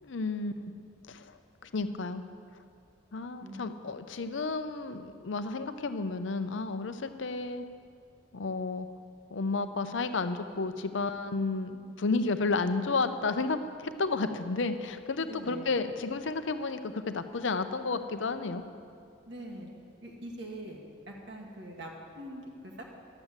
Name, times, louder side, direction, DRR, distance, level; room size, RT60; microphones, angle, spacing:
voice 1, 0.0-0.5 1.1-1.4 1.6-2.3 3.1-7.6 8.3-8.9 9.3-18.6, left 3 dB, 70° left, 9 dB, 0.6 m, -32 dB
voice 2, 15.3-15.7 19.2-19.7 20.0-20.8 21.1-22.8, right 1 dB, 60° right, -1 dB, 1.6 m, -43 dB
11.5 x 8.1 x 7.4 m, 2.4 s
head